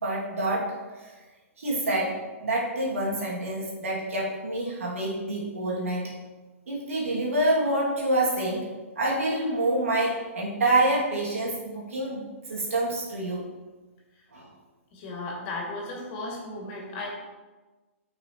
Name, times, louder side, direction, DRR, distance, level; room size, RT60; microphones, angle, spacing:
voice 1, 0.0-1.1 1.6-6.2 6.7-12.2 12.5-13.5 14.3-14.5, right 1 dB, 80° right, -4 dB, 2.5 m, -27 dB
voice 2, 14.9-17.1, left 2 dB, 40° left, -2 dB, 2.5 m, -35 dB
9.0 x 5.8 x 3.1 m, 1.2 s
hypercardioid pair, 125°, 7 cm